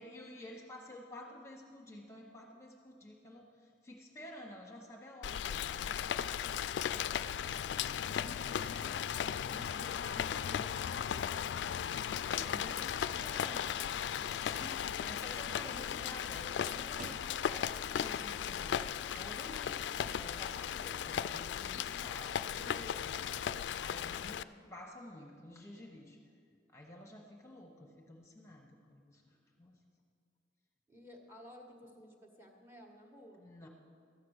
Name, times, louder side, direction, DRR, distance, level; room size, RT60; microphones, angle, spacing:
voice 1, 0.0-7.1 8.0-13.6 14.3-18.8 19.1-22.4 23.0-23.1 23.8-24.4 24.7-26.2 26.7-29.8 33.4-33.7, left 1 dB, 15° left, 0 dB, 1.0 m, -51 dB
Rain, 5.2-24.4, left 9 dB, 80° left, 0.3 m, -36 dB
sound 1, 16.7-24.0, right 3 dB, 45° right, 0.4 m, -58 dB
voice 2, 21.7-22.0 22.5-23.4 30.9-33.5, equal, 15° right, 1 dB, 1.3 m, -55 dB
13.0 x 8.4 x 6.4 m, 2.2 s
head